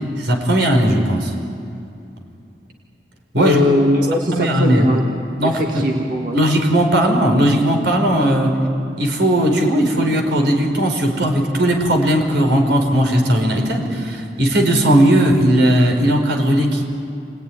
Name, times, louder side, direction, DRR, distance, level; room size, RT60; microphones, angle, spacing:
voice 1, 0.2-1.3 3.3-3.6 4.3-4.9 5.4-5.9 6.3-8.5 9.0-16.8, equal, 90° right, 2 dB, 4.6 m, -17 dB
voice 2, 3.4-5.1 5.5-6.4, left 1 dB, 50° right, 0 dB, 2.2 m, -19 dB
29.0 x 20.0 x 10.0 m, 2.5 s
head